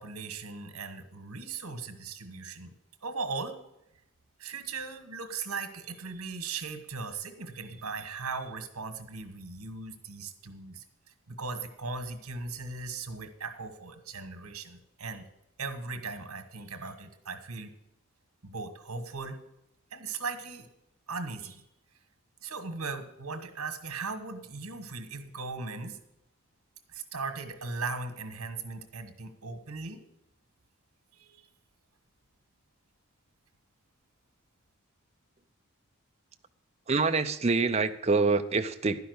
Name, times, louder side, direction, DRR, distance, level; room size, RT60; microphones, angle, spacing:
voice 1, 0.0-2.7 3.0-3.6 4.4-10.8 11.3-15.2 15.6-17.7 18.4-19.4 19.9-20.7 21.1-21.6 22.4-26.0 26.9-30.0 31.1-31.5, right 4 dB, 80° right, 8 dB, 1.4 m, -38 dB
voice 2, 36.9-39.0, right 4 dB, 30° right, 7 dB, 0.5 m, -26 dB
11.5 x 5.8 x 7.9 m, 0.82 s
head